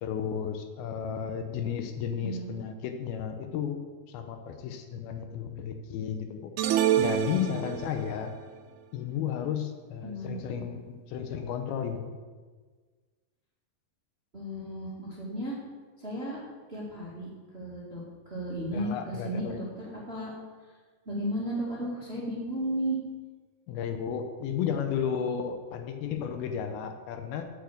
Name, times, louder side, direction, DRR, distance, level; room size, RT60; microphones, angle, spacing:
voice 1, 0.0-3.8 4.1-6.5 7.0-8.3 8.9-12.1 18.7-19.6 23.7-27.4, left 8 dB, 80° left, 6 dB, 2.6 m, -33 dB
voice 2, 2.2-2.5 10.0-10.7 14.3-15.6 16.0-16.4 16.7-20.3 21.0-23.0, right 1 dB, 25° right, -5 dB, 1.5 m, -34 dB
sound 1, 6.6-8.1, right 11 dB, 90° right, 2.6 m, -26 dB
9.2 x 7.2 x 7.8 m, 1.5 s
omnidirectional pair, 4.5 m